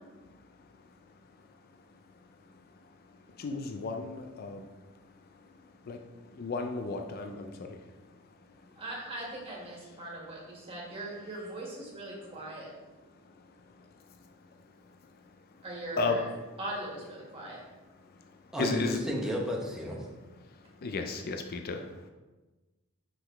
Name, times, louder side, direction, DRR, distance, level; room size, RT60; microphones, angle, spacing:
voice 1, 0.2-0.9 1.4-1.5 1.9-8.2 8.6-8.7 13.2-14.7 15.1-15.6 16.0-16.2 18.0-19.0 20.4-22.1, left 3 dB, 45° left, 5 dB, 0.4 m, -37 dB
voice 2, 8.8-12.7 15.6-16.3 16.6-17.6, right 1 dB, 25° right, -4 dB, 1.8 m, -40 dB
voice 3, 18.5-20.1, equal, 5° right, -2 dB, 0.8 m, -32 dB
5.8 x 5.0 x 3.3 m, 1.2 s
head